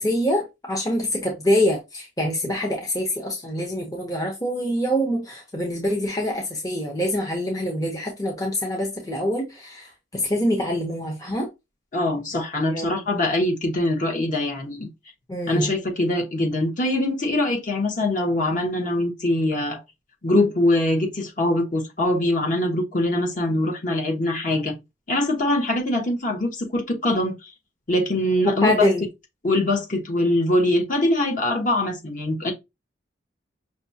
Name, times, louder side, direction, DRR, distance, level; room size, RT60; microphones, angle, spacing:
voice 1, 0.0-11.5 12.7-12.9 15.3-15.7 28.4-29.0, equal, 20° left, 0.8 m, -25 dB
voice 2, 11.9-14.9 15.5-19.8 20.2-24.7 25.1-27.5 27.9-28.9 29.4-32.5, left 1 dB, 45° left, 1.2 m, -23 dB
5.9 x 2.3 x 2.7 m
head